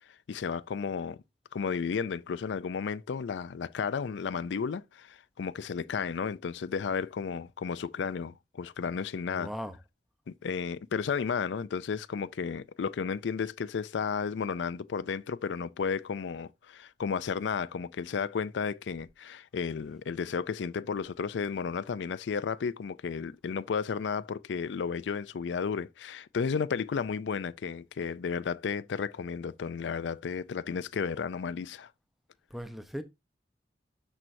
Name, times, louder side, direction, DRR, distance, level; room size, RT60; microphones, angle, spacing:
voice 1, 0.3-1.2 1.5-9.5 10.3-31.9, left 6 dB, 90° left, 0.4 m, -33 dB
voice 2, 9.3-9.8 32.5-33.0, equal, ahead, 0.7 m, -38 dB
12.5 x 4.5 x 2.6 m
head